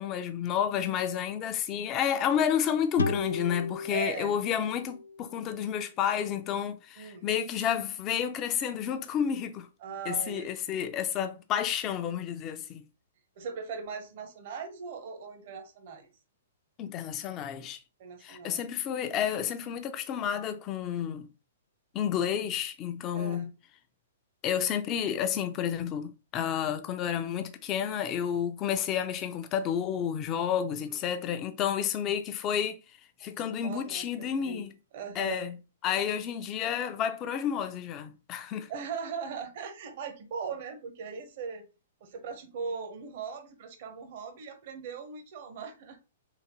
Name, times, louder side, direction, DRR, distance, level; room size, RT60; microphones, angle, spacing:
voice 1, 0.0-9.7 10.1-12.8 16.8-17.8 18.2-21.3 21.9-23.5 24.4-32.8 33.2-34.7 35.2-35.6 35.8-38.7, left 9 dB, 30° left, 0.5 m, -30 dB
sound 1, 3.0-6.3, left 4 dB, 90° left, 0.3 m, -35 dB
voice 2, 3.9-4.4 7.0-7.3 9.8-10.5 13.4-16.1 18.0-18.6 23.1-23.5 30.7-31.0 33.2-34.7 34.9-35.5 38.7-41.6 42.0-46.0, right 6 dB, 55° right, 0.8 m, -39 dB
3.8 x 2.6 x 3.0 m
hypercardioid pair, 125°, 0 cm